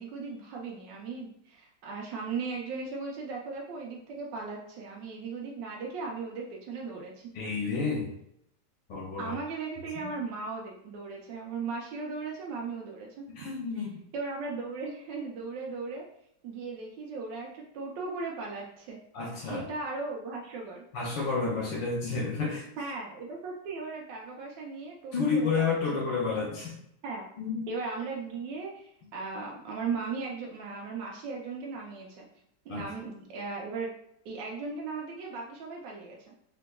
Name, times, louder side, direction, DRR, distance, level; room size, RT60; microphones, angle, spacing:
voice 1, 0.0-7.3 9.2-13.5 13.8-13.9 14.1-16.0 16.4-19.0 19.4-20.8 22.8-25.7 26.5-26.6 27.0-27.2 27.7-32.2 32.7-33.9 34.2-36.2, right 4 dB, 85° right, -1 dB, 1.2 m, -37 dB
voice 2, 7.3-8.1 8.9-9.3 10.0-10.1 13.4-14.0 19.1-19.6 20.9-22.7 25.1-26.8 27.4-27.7 32.7-32.8, left 4 dB, 90° left, -4 dB, 1.4 m, -30 dB
3.5 x 2.9 x 2.2 m, 0.73 s
omnidirectional pair, 1.9 m